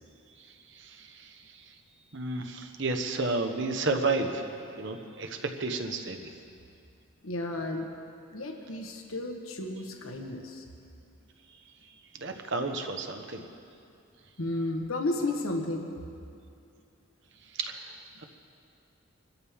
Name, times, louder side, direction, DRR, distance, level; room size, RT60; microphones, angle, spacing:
voice 1, 0.4-1.7 2.1-6.3 11.9-13.5 17.5-18.2, right 3 dB, 55° right, 5 dB, 1.2 m, -32 dB
voice 2, 7.2-7.9 8.3-10.7 14.4-15.9, left 2 dB, 80° left, 2 dB, 1.4 m, -33 dB
26.0 x 13.5 x 3.6 m, 2.5 s
head